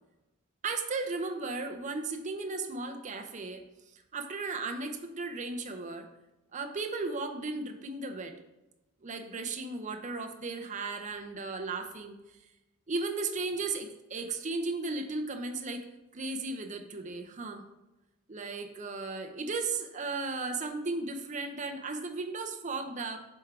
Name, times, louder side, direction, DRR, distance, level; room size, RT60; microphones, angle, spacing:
voice 1, 0.6-3.7 3.9-6.1 6.5-8.4 9.0-12.2 12.9-15.9 16.1-17.6 18.3-23.2, right 3 dB, 35° right, 5 dB, 0.6 m, -35 dB
7.6 x 3.7 x 4.8 m, 0.99 s
head